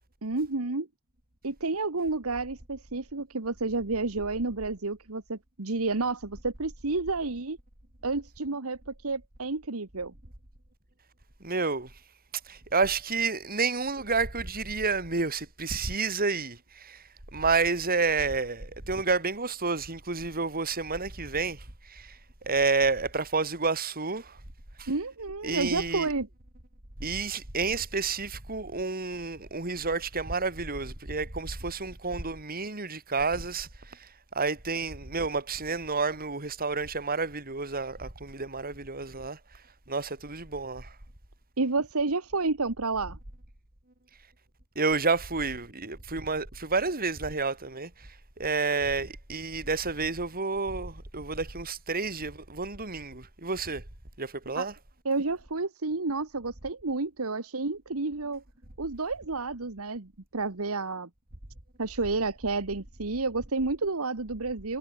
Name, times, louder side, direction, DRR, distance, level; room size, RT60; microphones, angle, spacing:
voice 1, 0.2-0.9 1.4-7.6 8.0-10.1 24.9-26.3 41.6-43.2 54.5-54.7 55.0-58.4 58.8-61.1 61.8-64.8, right 3 dB, 70° right, 1.5 m, -30 dB
voice 2, 11.4-11.9 12.5-17.0 17.3-22.1 22.5-24.4 24.8-24.9 25.4-26.1 27.0-34.0 34.3-39.4 39.9-40.9 44.8-47.9 48.4-53.8 54.2-54.7, right 4 dB, 40° right, 3.6 m, -30 dB
head